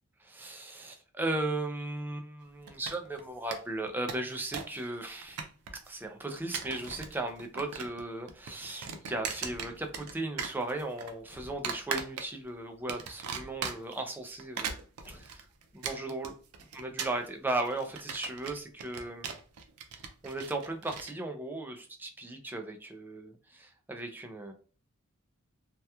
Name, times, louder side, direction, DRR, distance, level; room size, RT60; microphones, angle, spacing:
voice 1, 0.2-5.4 5.7-14.8 15.1-15.5 15.7-16.3 16.7-19.3 19.9-24.5, right 2 dB, 10° right, 4 dB, 0.3 m, -36 dB
sound 1, 2.7-3.2 3.5-3.6 3.9-4.8 5.0-5.9 6.4-7.1 7.4-8.0 8.3-10.1 10.4-11.1 11.6-12.5 12.9-14.0 14.4-21.1, right 6 dB, 85° right, 0.4 m, -38 dB
Car / Truck / Slam, 6.7-7.5 8.7-10.2 11.3-12.0 13.2-13.9 15.0-15.7, equal, 45° left, 0.5 m, -54 dB
2.8 x 2.2 x 2.2 m, 0.38 s
head